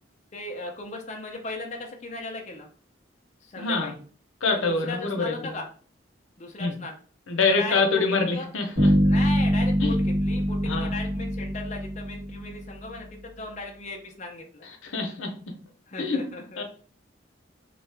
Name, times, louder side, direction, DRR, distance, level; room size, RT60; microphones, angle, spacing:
voice 1, 0.3-2.7 3.4-4.0 4.5-5.7 6.4-7.0 7.4-8.0 8.3-8.5 9.0-14.7 15.9-16.6, left 2 dB, 35° left, 1 dB, 0.5 m, -37 dB
voice 2, 3.6-3.9 4.4-5.5 6.6-6.7 7.3-8.9 9.8-9.9 10.7-10.9 14.6-15.3 16.0-16.2 16.6-16.7, left 4 dB, 85° left, 3 dB, 0.7 m, -25 dB
sound 1, 8.8-12.7, equal, 40° right, 1.4 m, -24 dB
2.7 x 2.3 x 3.2 m, 0.43 s
head